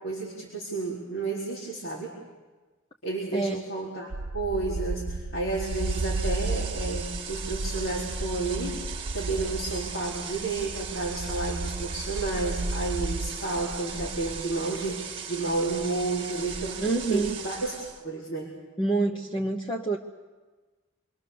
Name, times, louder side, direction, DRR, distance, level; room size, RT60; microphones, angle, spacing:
voice 1, 0.0-2.1 3.0-8.8 9.1-18.5, right 3 dB, 85° left, -3 dB, 4.4 m, -31 dB
sound 1, 4.1-13.3, right 3 dB, 80° right, 0.8 m, -33 dB
sound 2, 5.5-18.0, right 5 dB, 25° right, 1.6 m, -38 dB
voice 2, 16.8-17.4 18.8-20.0, right 3 dB, 25° left, 2 dB, 0.9 m, -27 dB
27.0 x 22.5 x 7.0 m, 1.3 s
head